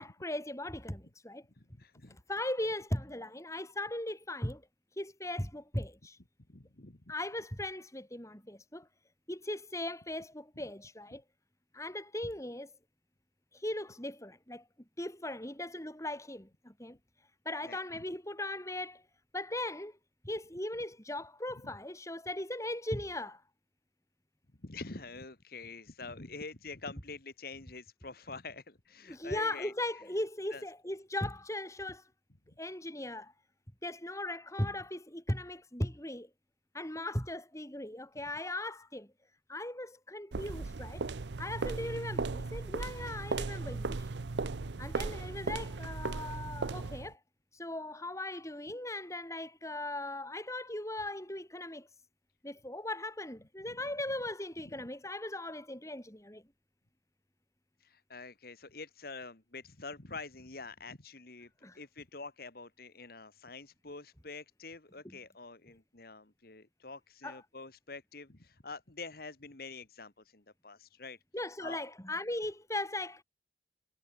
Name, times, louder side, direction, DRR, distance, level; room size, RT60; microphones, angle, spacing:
voice 1, 0.0-1.4 2.1-4.6 5.0-6.2 7.1-8.9 9.3-11.2 11.7-12.7 13.5-14.6 15.0-17.0 17.4-19.0 19.3-20.0 20.2-23.4 29.1-32.0 32.6-33.3 33.8-36.3 36.7-39.1 39.5-41.1 41.4-44.1 44.8-47.2 47.5-51.9 52.4-56.4 61.6-61.8 65.0-65.2 67.2-67.4 71.3-73.2, left 1 dB, 15° left, 6.6 m, -38 dB
voice 2, 1.6-2.2 6.5-7.0 17.6-17.8 24.6-30.0 30.5-30.6 44.5-44.6 53.7-53.9 54.7-54.8 57.8-71.2 71.6-71.8, left 3 dB, 55° left, 1.9 m, -46 dB
sound 1, 40.3-47.1, right 3 dB, 80° right, 0.7 m, -37 dB
head